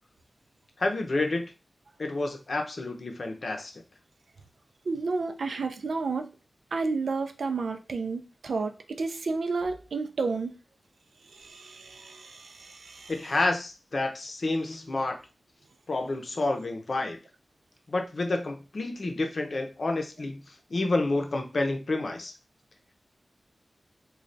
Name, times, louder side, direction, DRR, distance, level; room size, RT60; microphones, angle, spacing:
voice 1, 0.8-1.5 2.0-3.8 13.1-15.2 15.9-17.2 17.9-20.4 20.7-22.3, left 2 dB, 55° left, 4 dB, 0.6 m, -29 dB
voice 2, 4.9-6.3 6.7-8.7 9.0-10.5 11.4-13.1, right 4 dB, 90° right, 6 dB, 0.5 m, -31 dB
3.2 x 2.3 x 3.9 m, 0.31 s
wide cardioid pair, 105°, 0 cm